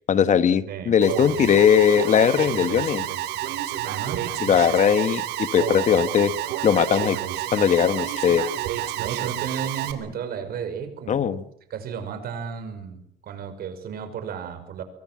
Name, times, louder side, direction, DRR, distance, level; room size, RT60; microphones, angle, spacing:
voice 1, 0.1-3.0 4.4-6.3 6.6-7.2 7.5-8.4 11.1-11.4, left 8 dB, 45° left, 13 dB, 1.5 m, -19 dB
voice 2, 0.7-1.0 3.8-4.3 9.0-11.3 11.7-14.8, right 7 dB, 65° right, 9 dB, 5.6 m, -33 dB
Alarm, 1.0-9.9, right 13 dB, 85° right, 3.1 m, -29 dB
25.5 x 22.5 x 7.6 m, 0.71 s
cardioid pair, 110°, 17 cm